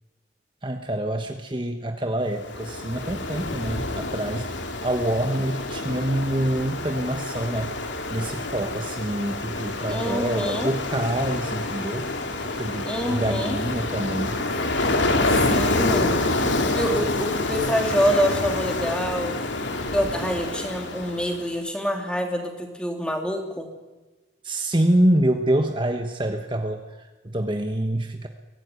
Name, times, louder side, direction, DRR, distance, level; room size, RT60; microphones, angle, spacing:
voice 1, 0.6-4.5 4.8-7.8 8.1-12.1 12.4-14.4 24.4-28.3, right 1 dB, 25° right, 5 dB, 1.2 m, -26 dB
Ocean, 2.3-21.5, left 2 dB, 80° left, 2.6 m, -27 dB
voice 2, 9.9-10.7 12.8-13.6 15.2-16.1 16.6-19.4 19.9-23.7, equal, 5° left, 3 dB, 3.1 m, -26 dB
23.5 x 17.5 x 9.5 m, 1.2 s
head